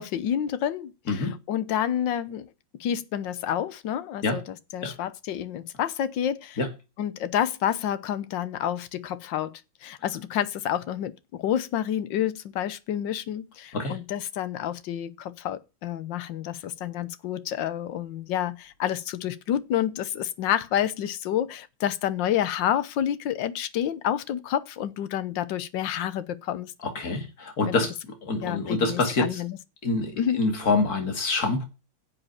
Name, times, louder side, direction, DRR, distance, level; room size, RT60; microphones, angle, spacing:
voice 1, 0.0-2.5 2.8-4.4 4.7-6.6 7.0-26.7 27.7-27.8 28.4-29.6 30.2-30.4, left 10 dB, 65° left, 1.5 m, -29 dB
voice 2, 26.8-27.9 28.2-29.4 29.8-31.6, left 3 dB, 45° left, 2.7 m, -26 dB
11.0 x 7.6 x 7.4 m
omnidirectional pair, 2.4 m